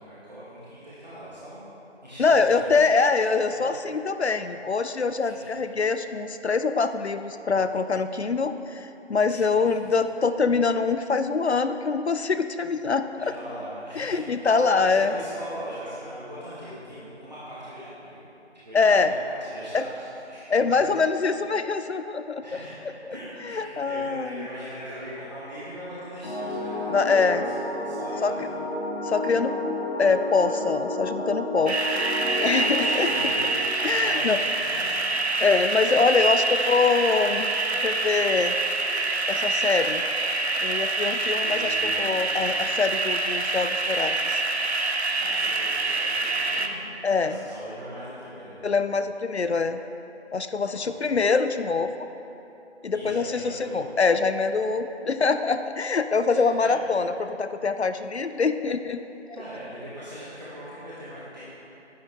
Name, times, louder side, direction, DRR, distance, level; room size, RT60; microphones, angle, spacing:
voice 1, 0.0-1.8 2.0-2.8 3.1-3.7 5.2-5.5 9.3-9.8 13.2-18.2 18.5-20.8 22.4-22.8 23.1-28.6 32.5-35.1 41.4-42.6 45.2-46.9 47.2-48.7 50.7-51.1 52.9-53.9 56.3-56.8 59.4-61.4, equal, 40° right, -10 dB, 1.9 m, -41 dB
voice 2, 2.2-13.3 14.0-15.1 18.7-19.1 19.7-19.8 20.5-22.4 23.4-24.5 26.9-27.4 28.2-28.3 29.0-29.6 30.0-31.8 32.4-33.1 33.8-34.4 35.4-37.5 37.8-38.5 39.3-40.0 40.6-44.4 47.0-47.4 48.6-49.8 50.3-51.9 52.8-59.0, left 4 dB, 70° left, 10 dB, 0.5 m, -24 dB
sound 1, 26.2-33.4, left 1 dB, 40° left, 1.9 m, -31 dB
sound 2, 31.7-46.7, right 3 dB, 65° right, 0.8 m, -26 dB
10.0 x 9.7 x 3.6 m, 2.9 s
figure-of-eight pair, 175°, 34 cm